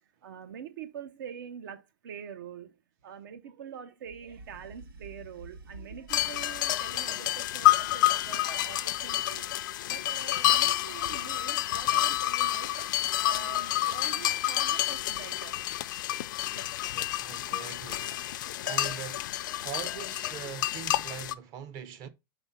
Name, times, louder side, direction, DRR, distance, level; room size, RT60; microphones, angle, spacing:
voice 1, 0.2-2.8 3.0-9.5 9.9-12.9 13.2-15.6 16.5-16.7, right 8 dB, 60° right, 1.0 m, -45 dB
sound 1, 4.0-7.1 7.6-8.5, right 2 dB, 85° right, 4.0 m, -50 dB
sound 2, 6.1-21.3, left 14 dB, 60° left, 0.5 m, -29 dB
voice 2, 16.9-18.2 18.6-19.3 19.6-22.1, right 9 dB, 30° right, 0.8 m, -42 dB
5.4 x 3.6 x 5.7 m
supercardioid pair, 165°, 12 cm